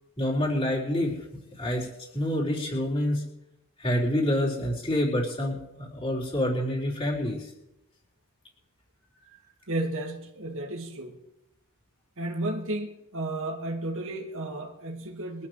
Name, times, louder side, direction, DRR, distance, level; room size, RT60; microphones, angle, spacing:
voice 1, 0.2-1.1 1.6-1.9 2.1-3.2 3.8-7.4, left 1 dB, 25° left, 4.2 m, -27 dB
voice 2, 9.7-11.2 12.2-15.5, right 1 dB, 65° right, 1.9 m, -33 dB
23.0 x 12.5 x 3.3 m
head